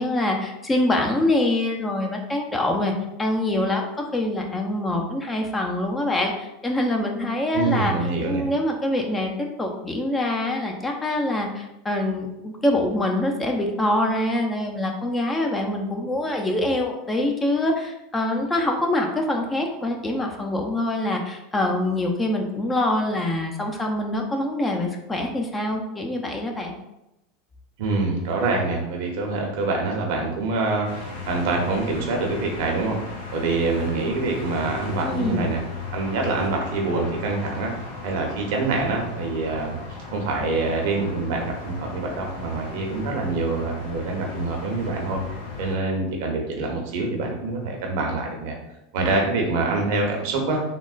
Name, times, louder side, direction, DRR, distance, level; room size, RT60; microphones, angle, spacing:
voice 1, 0.0-2.9 3.2-7.9 8.3-9.3 9.6-26.7 35.0-35.5, left 1 dB, 20° left, 2 dB, 0.5 m, -25 dB
voice 2, 7.5-8.4 27.8-33.0 33.3-35.6 35.9-37.8 38.0-39.8 40.1-45.2 45.6-48.6 48.9-50.6, right 3 dB, 65° right, 1 dB, 0.7 m, -25 dB
sound 1, 30.8-45.8, left 4 dB, 75° left, 0.7 m, -36 dB
3.6 x 2.1 x 2.4 m, 0.90 s
hypercardioid pair, 90°, 0 cm